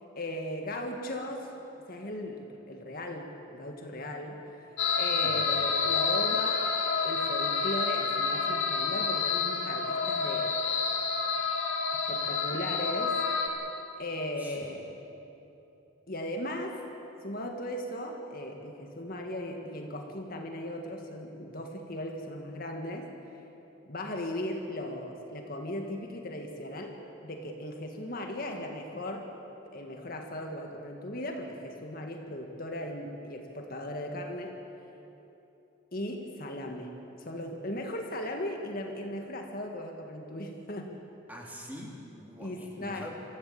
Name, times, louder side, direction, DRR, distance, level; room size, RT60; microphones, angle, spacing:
voice 1, 0.1-1.5 1.9-4.4 5.0-6.7 7.0-10.6 11.9-13.2 14.0-14.9 16.1-16.8 17.2-23.1 23.9-29.3 29.6-34.6 35.9-41.0 42.4-43.1, left 1 dB, 45° left, 3 dB, 1.7 m, -37 dB
sound 1, 4.8-13.5, left 5 dB, 70° left, 2.5 m, -29 dB
voice 2, 5.2-5.5 14.4-14.7 41.3-43.1, equal, 10° right, -2 dB, 3.1 m, -45 dB
25.0 x 15.0 x 8.6 m, 2.9 s
head